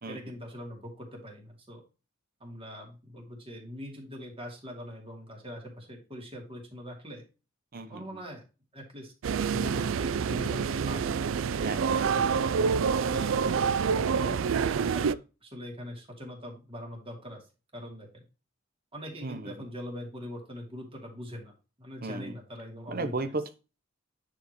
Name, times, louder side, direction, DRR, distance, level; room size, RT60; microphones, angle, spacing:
voice 1, 0.1-1.8 2.4-7.2 7.9-8.4 8.7-9.1 9.4-11.2 12.2-12.4 13.0-17.5 17.7-18.2 18.9-23.3, equal, 30° right, 0 dB, 2.6 m, -42 dB
voice 2, 7.7-8.2 11.6-11.8 19.2-19.5 22.0-22.3 22.9-23.5, right 3 dB, 45° right, 10 dB, 0.8 m, -34 dB
sound 1, 9.2-15.1, right 6 dB, 70° right, 0.4 m, -27 dB
9.7 x 4.9 x 3.1 m, 0.31 s
head